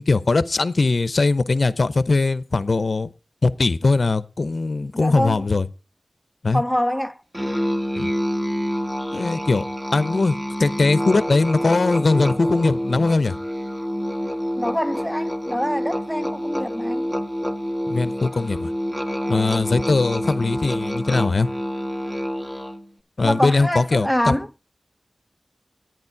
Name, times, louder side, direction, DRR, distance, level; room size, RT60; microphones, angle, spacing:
voice 1, 0.0-3.1 3.4-5.7 6.4-6.6 8.0-8.1 9.1-9.6 9.9-10.3 10.6-13.3 17.9-18.7 19.3-21.5 23.2-24.4, left 3 dB, 70° left, 0.7 m, -20 dB
voice 2, 4.9-5.4 6.5-7.2 14.6-17.1 23.2-24.5, equal, ahead, 0.8 m, -25 dB
Musical instrument, 7.3-22.9, equal, 15° right, 1.8 m, -27 dB
11.0 x 9.3 x 4.6 m
cardioid pair, 40°, 0 cm